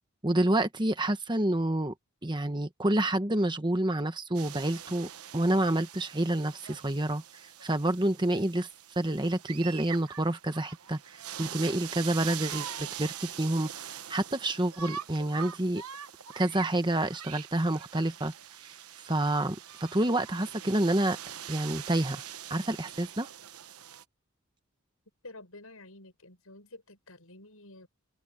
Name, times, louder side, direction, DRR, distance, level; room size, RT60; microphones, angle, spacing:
voice 1, 0.2-1.9 2.2-7.2 7.6-8.7 8.9-15.8 16.4-18.3 19.0-21.2 21.5-22.2 22.5-23.3, right 1 dB, 20° right, 1.2 m, -28 dB
sound 1, 4.3-24.0, right 9 dB, 85° right, 1.1 m, -43 dB
voice 2, 25.2-27.9, left 2 dB, 70° left, 7.3 m, -50 dB
head